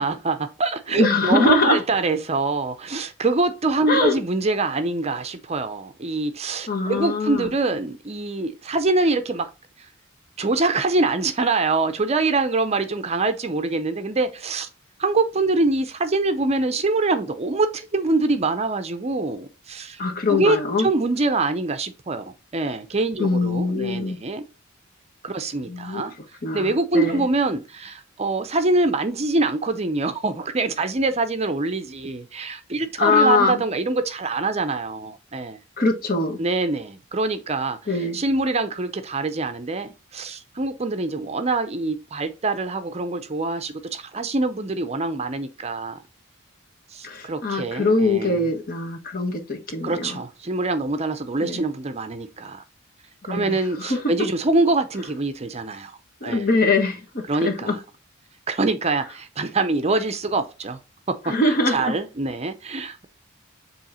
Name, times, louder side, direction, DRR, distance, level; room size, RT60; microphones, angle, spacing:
voice 1, 0.0-9.5 10.4-14.7 15.0-20.0 20.3-24.4 25.2-26.1 26.5-35.6 36.4-46.0 46.9-48.5 49.8-52.6 53.3-56.0 56.2-56.5 57.3-57.8 58.5-60.8 61.1-63.1, right 3 dB, 30° right, 0.6 m, -24 dB
voice 2, 1.0-1.8 3.9-4.2 6.7-7.5 20.0-20.9 23.2-24.2 25.7-26.0 26.4-27.2 33.0-33.6 35.8-36.4 37.9-38.2 47.0-50.2 51.4-51.6 53.3-54.0 56.2-57.8 61.2-61.8, left 3 dB, 45° left, 1.4 m, -22 dB
7.5 x 3.1 x 4.2 m
head